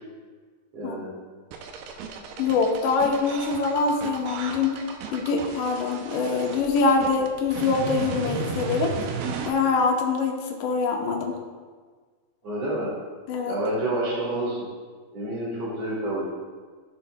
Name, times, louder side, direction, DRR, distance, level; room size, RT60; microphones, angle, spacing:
voice 1, 0.7-1.1 12.4-13.0 13.5-14.6 15.1-16.3, right 1 dB, 45° right, -8 dB, 2.7 m, -28 dB
sound 1, 1.5-9.5, right 5 dB, 80° right, 2.3 m, -34 dB
voice 2, 2.4-4.8 5.1-8.9 9.5-11.4 13.3-13.6, left 4 dB, 90° left, 1 dB, 3.1 m, -24 dB
12.5 x 7.5 x 2.3 m, 1.5 s
omnidirectional pair, 4.8 m